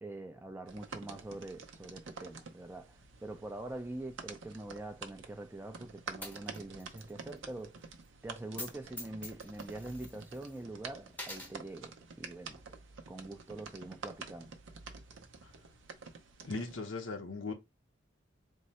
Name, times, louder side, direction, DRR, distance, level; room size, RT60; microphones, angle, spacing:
voice 1, 0.0-7.8 8.2-12.6 13.1-14.5, right 2 dB, 10° right, 0.5 m, -44 dB
sound 1, 0.7-16.8, right 5 dB, 70° right, 0.6 m, -49 dB
Coin (dropping), 6.2-7.1 7.4-7.5 8.5-8.7 9.0-10.6 11.1-11.5, left 2 dB, 10° left, 0.8 m, -45 dB
voice 2, 16.4-17.5, left 3 dB, 80° left, 0.8 m, -38 dB
3.7 x 2.1 x 4.2 m
head